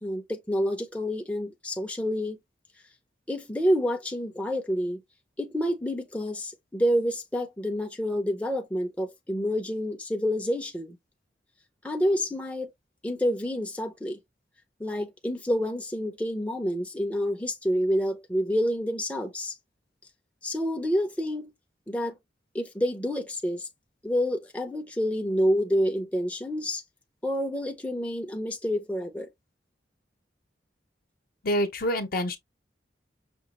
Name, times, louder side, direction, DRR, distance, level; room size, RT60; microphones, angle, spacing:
voice 1, 0.0-2.4 3.3-5.0 5.4-11.0 11.8-12.7 13.0-14.2 14.8-19.6 20.4-21.5 21.9-22.2 22.5-23.7 24.0-26.8 27.2-29.3, equal, 5° left, 0.5 m, -28 dB
voice 2, 31.4-32.4, equal, 50° left, 0.9 m, -26 dB
6.0 x 2.4 x 2.9 m
head